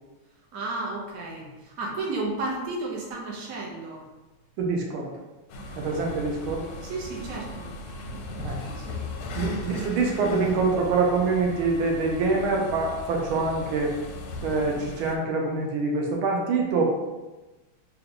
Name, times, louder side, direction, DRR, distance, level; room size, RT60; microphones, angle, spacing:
voice 1, 0.5-4.0 6.8-7.7 8.7-9.0, right 2 dB, 60° right, -2 dB, 0.9 m, -33 dB
voice 2, 4.6-5.1 5.8-6.7 8.4-8.6 9.4-13.9 14.4-16.9, right 3 dB, 80° right, 0 dB, 1.5 m, -25 dB
sound 1, 5.5-15.2, left 2 dB, 85° left, 1.5 m, -37 dB
3.9 x 2.3 x 3.5 m, 1.1 s
omnidirectional pair, 2.3 m